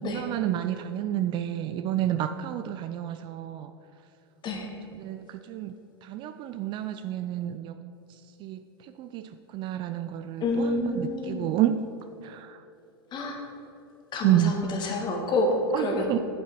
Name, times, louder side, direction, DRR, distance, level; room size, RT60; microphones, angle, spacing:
voice 1, 0.0-3.7 5.0-5.7 6.0-7.7 8.4-8.6 9.0-11.8 12.2-12.6 14.2-14.6 15.7-16.2, right 12 dB, 35° right, 10 dB, 0.4 m, -29 dB
voice 2, 10.4-11.5 13.1-13.4 14.1-16.2, left 2 dB, 30° left, 2 dB, 1.6 m, -28 dB
8.3 x 7.4 x 4.5 m, 2.8 s
hypercardioid pair, 95°, 14 cm